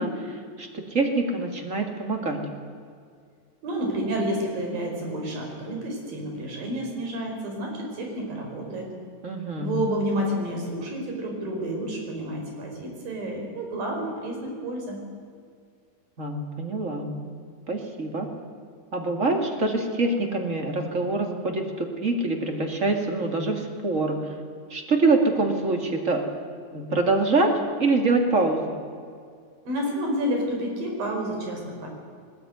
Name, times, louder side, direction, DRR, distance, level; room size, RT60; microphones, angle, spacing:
voice 1, 0.0-2.4 9.2-9.7 16.2-17.1 17.7-18.3 18.9-24.2 24.7-26.2 26.7-27.5 27.8-28.8, right 3 dB, 25° right, 3 dB, 2.2 m, -25 dB
voice 2, 3.6-8.9 9.6-15.0 29.7-31.9, right 1 dB, 80° right, 1 dB, 6.6 m, -30 dB
20.5 x 19.5 x 9.4 m, 2.2 s
omnidirectional pair, 4.0 m